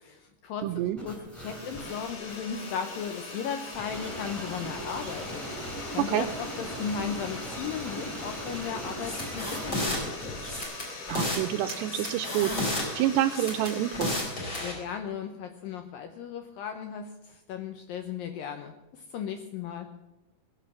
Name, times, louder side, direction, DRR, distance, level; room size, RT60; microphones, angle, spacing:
voice 1, 0.0-10.4 14.6-19.9, left 7 dB, 80° left, 7 dB, 2.1 m, -36 dB
voice 2, 0.6-1.0 6.1-6.3 11.1-14.2, right 12 dB, 80° right, 6 dB, 2.7 m, -28 dB
sound 1, 1.0-10.6, right 1 dB, ahead, 4.5 m, -39 dB
sound 2, 1.3-14.8, left 3 dB, 45° left, 3.3 m, -42 dB
sound 3, 9.0-10.0 10.4-11.4 11.7-12.8 13.3-14.7, left 1 dB, 25° left, 4.4 m, -31 dB
20.5 x 7.4 x 6.9 m, 1.0 s
omnidirectional pair, 5.1 m